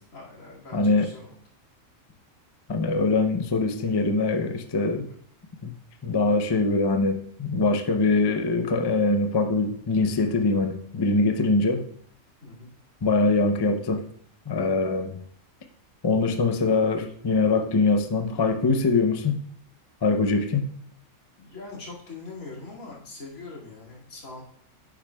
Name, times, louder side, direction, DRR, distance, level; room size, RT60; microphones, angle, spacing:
voice 1, 0.1-1.3 12.4-12.7 21.4-24.4, left 3 dB, 85° left, 2.7 m, -42 dB
voice 2, 0.7-1.1 2.7-5.1 5.6-5.7 6.0-11.9 13.0-14.0 14.5-15.2 16.0-19.4 20.0-20.7, left 3 dB, 30° left, 0.4 m, -23 dB
9.9 x 7.0 x 2.3 m
omnidirectional pair, 1.4 m